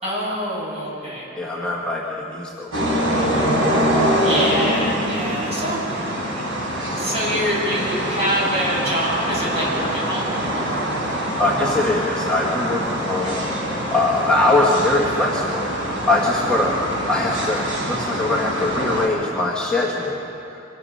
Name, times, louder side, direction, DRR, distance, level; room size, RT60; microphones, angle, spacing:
voice 1, 0.0-1.3 4.2-6.1 6.3-6.4 7.0-10.9 13.2-13.5, equal, 30° right, -5 dB, 6.7 m, -25 dB
voice 2, 1.4-2.9 5.2-5.3 11.4-13.4 13.9-16.8 17.1-20.2, left 2 dB, 5° left, -5 dB, 1.6 m, -22 dB
sound 1, 2.7-19.1, equal, 85° right, 4.7 m, -24 dB
25.0 x 19.5 x 5.6 m, 2.8 s
head